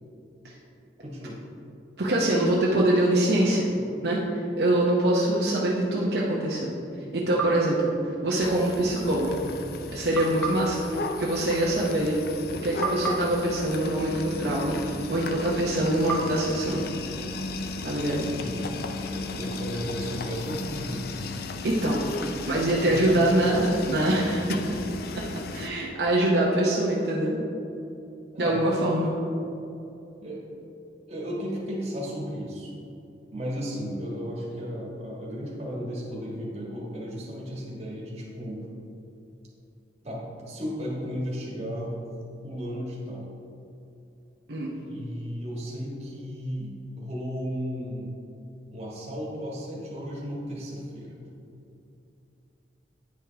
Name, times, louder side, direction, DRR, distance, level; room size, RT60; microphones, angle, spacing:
voice 1, 1.0-1.4 18.3-18.6 19.1-21.0 22.7-23.1 28.3-28.6 30.2-30.4 31.1-32.7 33.3-38.6 40.0-42.0 42.4-43.3 44.8-48.1 48.7-51.3, equal, 35° right, -4 dB, 1.6 m, -34 dB
voice 2, 2.0-3.7 4.0-6.7 7.1-9.4 9.9-12.2 12.6-16.8 17.8-18.3 21.6-24.6 25.5-27.4 28.4-29.2 44.5-44.7, right 1 dB, 65° right, -4 dB, 0.8 m, -24 dB
sound 1, 7.4-8.7 10.1-12.5 12.8-15.1 16.1-17.9, right 4 dB, 5° left, 0.8 m, -36 dB
sound 2, 8.4-25.7, left 3 dB, 60° left, 0.4 m, -35 dB
9.3 x 5.0 x 3.4 m, 2.7 s
head